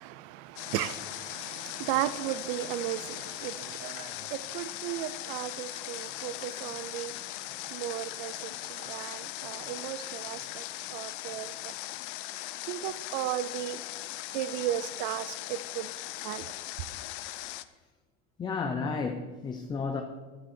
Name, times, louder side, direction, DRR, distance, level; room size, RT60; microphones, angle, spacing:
voice 1, 0.0-11.8 12.6-13.8 14.3-15.9 16.2-16.9, right 13 dB, 55° right, 0.6 m, -36 dB
Water, 0.6-17.6, left 17 dB, 60° left, 0.6 m, -39 dB
voice 2, 18.4-20.0, left 4 dB, 15° left, 0.6 m, -32 dB
13.0 x 10.5 x 4.4 m
cardioid pair, 175°, 29 cm